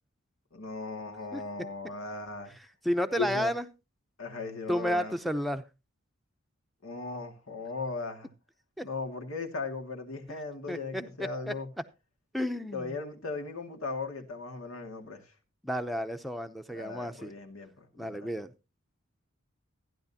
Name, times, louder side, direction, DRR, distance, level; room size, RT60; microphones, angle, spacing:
voice 1, 0.5-2.5 3.2-3.5 4.2-5.1 6.8-8.3 8.8-11.7 12.7-15.3 16.7-18.3, left 3 dB, 85° left, 2.2 m, -37 dB
voice 2, 2.8-3.7 4.7-5.6 8.8-8.9 10.7-11.0 11.5-11.6 12.3-13.0 15.6-17.3 18.0-18.5, equal, ahead, 0.6 m, -31 dB
14.5 x 10.5 x 2.8 m
head